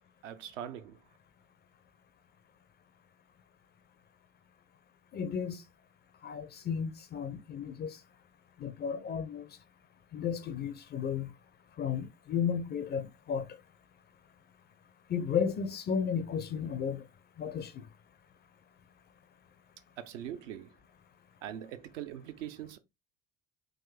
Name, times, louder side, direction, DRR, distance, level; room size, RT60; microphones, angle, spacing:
voice 1, 0.2-1.0 20.0-20.7 21.4-22.8, right 10 dB, 65° right, 0.6 m, -42 dB
voice 2, 5.1-5.6 6.2-8.0 8.6-9.6 10.1-11.3 11.8-13.5 15.1-17.1 17.4-17.9, left 7 dB, 25° left, 0.4 m, -33 dB
3.7 x 2.6 x 3.3 m
figure-of-eight pair, 60°, 40 cm